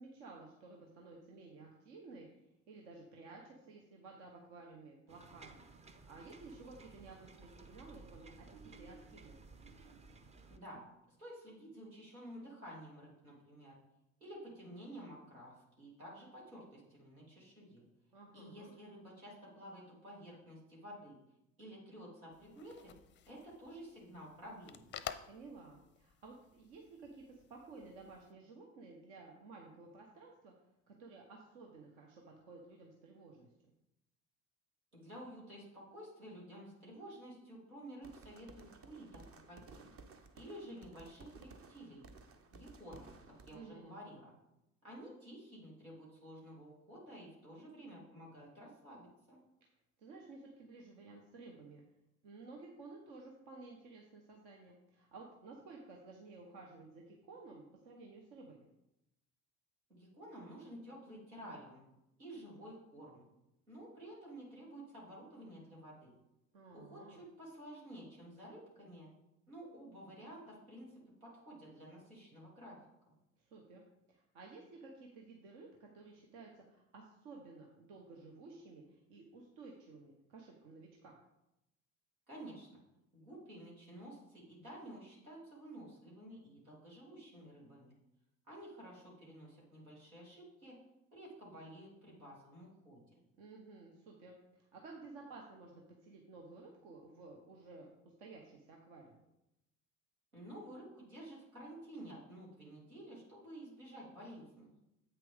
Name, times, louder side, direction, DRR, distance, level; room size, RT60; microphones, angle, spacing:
voice 1, 0.0-5.6 6.1-9.4 18.1-18.7 25.3-30.5 30.9-33.5 43.5-44.0 50.0-51.8 52.2-58.7 66.5-67.2 73.4-81.1 93.4-97.9 98.2-99.2, right 3 dB, 60° right, 0 dB, 1.2 m, -54 dB
sound 1, 5.1-10.6, right 3 dB, 15° right, 0.6 m, -56 dB
voice 2, 10.5-10.8 11.2-13.7 14.2-17.8 18.3-21.2 21.6-23.0 23.3-24.9 34.9-39.9 40.3-42.1 42.5-44.3 44.8-49.4 59.9-61.8 62.2-63.2 63.7-66.1 66.7-69.1 69.5-72.8 82.3-82.8 83.1-87.9 88.5-90.8 91.1-93.2 100.3-104.7, right 1 dB, 85° right, -5 dB, 2.9 m, -52 dB
sound 2, 22.3-28.3, left 10 dB, 25° left, 0.5 m, -52 dB
sound 3, 38.0-43.6, right 3 dB, 35° right, 0.9 m, -57 dB
8.3 x 5.9 x 3.6 m, 0.87 s
figure-of-eight pair, 65°, 42 cm